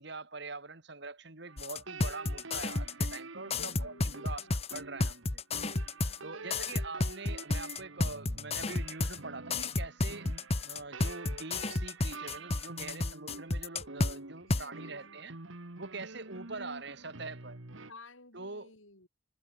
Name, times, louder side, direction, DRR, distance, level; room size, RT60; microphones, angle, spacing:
voice 1, 0.0-5.4 6.2-10.3 10.6-15.4 15.8-17.6 18.3-18.7, right 3 dB, 55° right, 2.1 m, -44 dB
sound 1, 1.5-17.9, right 3 dB, 70° right, 1.9 m, -48 dB
sound 2, 1.6-3.2 3.5-6.2 6.5-9.2 9.5-14.1 14.5-14.6, left 2 dB, 30° left, 1.1 m, -31 dB
voice 2, 3.4-4.6 6.1-6.7 14.4-15.2 17.9-19.1, left 2 dB, 70° left, 6.6 m, -55 dB
head